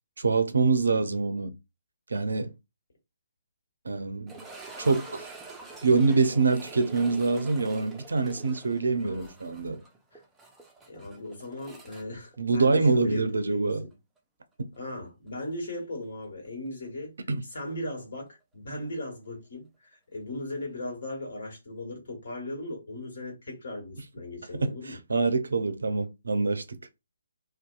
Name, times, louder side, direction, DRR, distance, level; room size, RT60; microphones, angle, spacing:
voice 1, 0.2-1.5 2.1-2.5 3.9-4.3 4.8-5.3 5.8-9.8 12.4-13.8 14.6-14.7 17.3-17.4 24.6-26.8, right 4 dB, 70° right, 0.4 m, -25 dB
sound 1, 4.3-13.2 13.4-13.5 14.2-14.3 16.9-17.0, right 3 dB, 5° right, 0.4 m, -46 dB
voice 2, 9.0-9.3 10.1-10.2 10.9-13.9 14.7-17.2 17.4-25.0, left 1 dB, 55° left, 1.4 m, -38 dB
2.6 x 2.2 x 2.3 m
figure-of-eight pair, 140°, 0 cm